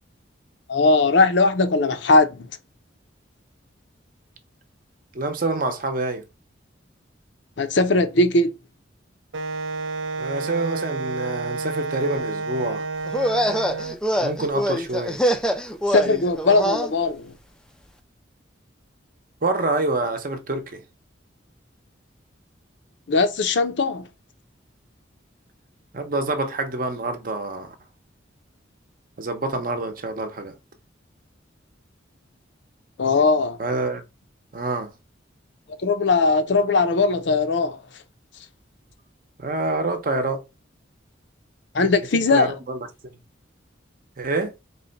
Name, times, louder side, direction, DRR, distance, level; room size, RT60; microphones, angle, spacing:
voice 1, 0.7-2.5 7.6-8.5 15.9-17.3 23.1-24.1 33.0-33.6 35.8-37.8 41.7-42.5, left 3 dB, 65° left, 0.6 m, -19 dB
voice 2, 5.1-6.3 10.2-12.9 14.2-15.2 19.4-20.8 25.9-27.7 29.2-30.5 33.6-34.0 34.5-34.9 39.4-40.4 42.3-43.2 44.2-44.5, right 2 dB, 45° right, 0.7 m, -26 dB
Wind instrument woodwind instrument, 9.3-14.0, right 3 dB, 80° right, 0.5 m, -30 dB
sound 1, 13.1-16.9, equal, 5° left, 0.3 m, -24 dB
3.9 x 2.2 x 3.9 m
head